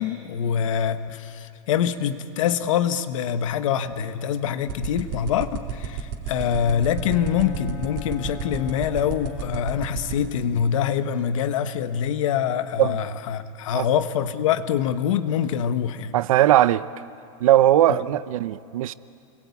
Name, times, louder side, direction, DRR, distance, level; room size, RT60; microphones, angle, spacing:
voice 1, 0.0-16.1 17.9-18.0, left 9 dB, 70° left, 1.4 m, -25 dB
sound 1, 4.7-10.3, right 8 dB, 40° right, 2.7 m, -30 dB
Bowed string instrument, 6.4-10.1, left 6 dB, 30° left, 2.2 m, -37 dB
voice 2, 16.1-16.8 17.4-18.9, right 13 dB, 90° right, 0.8 m, -19 dB
30.0 x 22.0 x 8.5 m
supercardioid pair, 180°, 17 cm